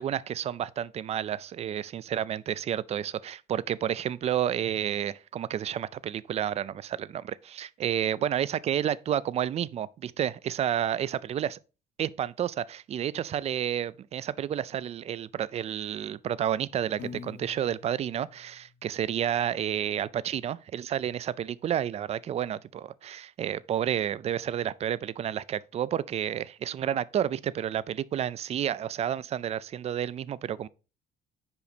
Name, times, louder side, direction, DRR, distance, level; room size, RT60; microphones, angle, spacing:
voice 1, 0.0-11.6 12.0-30.7, right 10 dB, 40° right, 0.3 m, -30 dB
Piano, 17.0-19.2, left 5 dB, 85° left, 1.5 m, -46 dB
5.6 x 5.1 x 4.2 m
cardioid pair, 110°, 17 cm